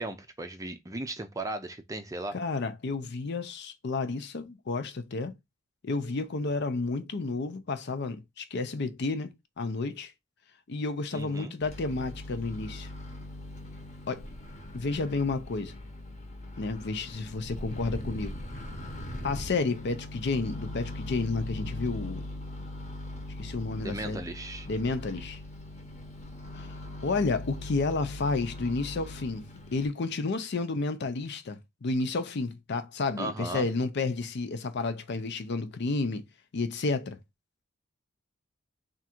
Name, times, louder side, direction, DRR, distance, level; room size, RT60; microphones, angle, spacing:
voice 1, 0.0-2.4 11.1-11.5 23.8-24.7 33.2-33.7, right 2 dB, 15° right, 0.5 m, -36 dB
voice 2, 2.3-5.3 5.8-10.1 10.7-12.9 14.1-14.3 14.7-15.7 16.6-18.3 19.2-22.2 23.4-24.2 24.7-25.4 27.0-29.4 29.7-36.3 36.5-37.2, left 3 dB, 60° left, 0.6 m, -31 dB
Microwave oven, 11.6-29.9, left 1 dB, 35° left, 1.0 m, -40 dB
3.6 x 2.5 x 4.3 m
head